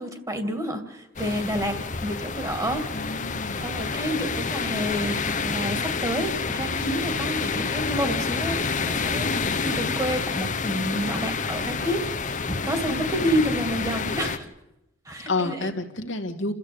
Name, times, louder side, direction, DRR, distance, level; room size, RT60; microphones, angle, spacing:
voice 1, 0.0-2.9 3.6-9.3 9.6-12.0 12.5-14.5 15.1-15.7, equal, 20° right, 7 dB, 2.3 m, -29 dB
sound 1, 1.2-14.4, left 4 dB, 40° left, 1.0 m, -28 dB
voice 2, 2.9-3.7 9.2-9.6 12.9-13.3 15.3-16.5, left 2 dB, 75° left, 4 dB, 1.9 m, -30 dB
29.0 x 13.5 x 8.7 m, 0.91 s
head